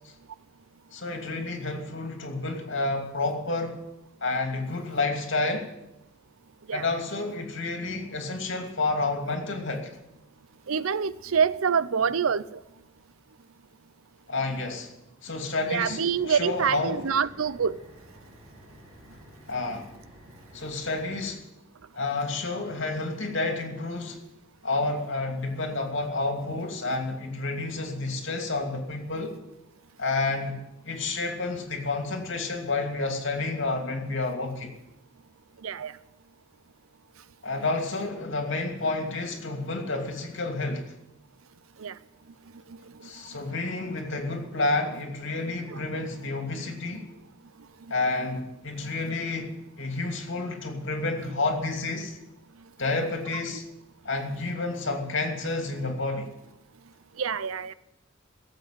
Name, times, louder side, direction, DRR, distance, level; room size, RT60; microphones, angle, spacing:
voice 1, 0.9-3.8 4.2-5.7 6.7-9.9 14.3-14.9 15.2-17.1 19.5-19.9 20.5-21.4 21.9-24.2 24.6-29.4 30.0-30.6 30.8-34.7 37.4-40.9 43.0-47.1 47.9-52.2 52.8-53.6 54.0-56.3, left 3 dB, 65° left, 3 dB, 2.7 m, -30 dB
voice 2, 10.7-12.6 15.7-17.8 35.6-35.9 41.8-41.9 43.0-43.1 45.7-45.8 57.2-57.7, right 6 dB, 90° right, 17 dB, 0.6 m, -26 dB
sound 1, 15.7-21.2, equal, ahead, 7.6 m, -51 dB
16.0 x 8.1 x 9.0 m, 0.91 s
head